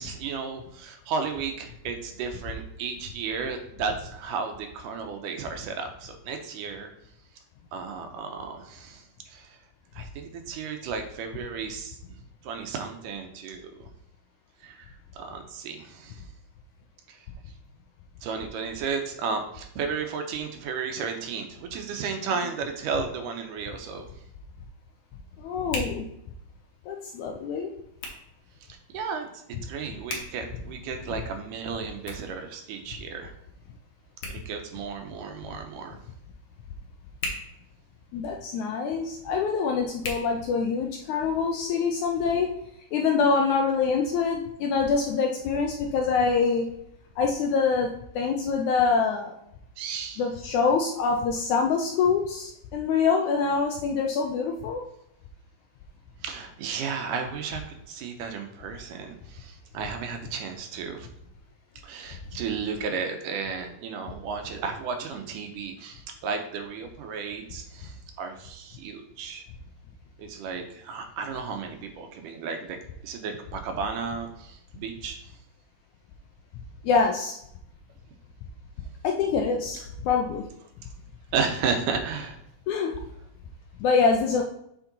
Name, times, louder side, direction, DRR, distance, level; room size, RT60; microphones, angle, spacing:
voice 1, 0.0-6.9 7.7-9.6 10.0-12.0 12.4-13.9 14.6-16.2 17.1-17.2 18.2-24.1 28.9-29.3 29.6-33.3 34.3-36.0 49.8-50.2 56.2-61.1 61.8-69.4 70.2-72.8 73.0-75.2 81.3-82.4, right 5 dB, 75° right, 5 dB, 2.2 m, -33 dB
Hands, 23.4-41.1, left 2 dB, 60° left, 2.1 m, -43 dB
voice 2, 25.4-26.1 26.9-27.7 38.1-42.5 42.9-46.6 47.2-47.9 48.1-49.3 50.2-54.8 76.8-77.3 79.0-80.4 82.7-82.9 83.8-84.4, left 5 dB, 75° left, 1 dB, 1.8 m, -25 dB
7.2 x 4.5 x 3.9 m, 0.75 s
omnidirectional pair, 4.0 m